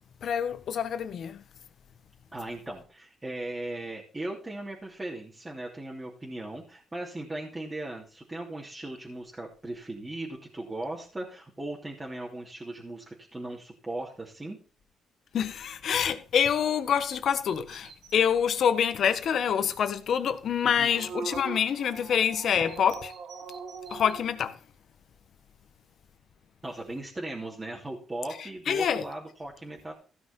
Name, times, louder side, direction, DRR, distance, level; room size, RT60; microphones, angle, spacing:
voice 1, 0.2-1.4 15.3-23.0 23.9-24.5 28.7-29.0, left 8 dB, 60° left, 1.5 m, -26 dB
voice 2, 2.3-14.6 20.6-20.9 26.6-29.9, right 2 dB, 20° right, 2.9 m, -38 dB
sound 1, 17.3-18.3 18.8-18.9 19.2-19.3 19.7-19.8 20.1-20.2 20.6-24.2, right 5 dB, 70° right, 2.6 m, -41 dB
15.5 x 6.0 x 5.6 m
cardioid pair, 90°, 0 cm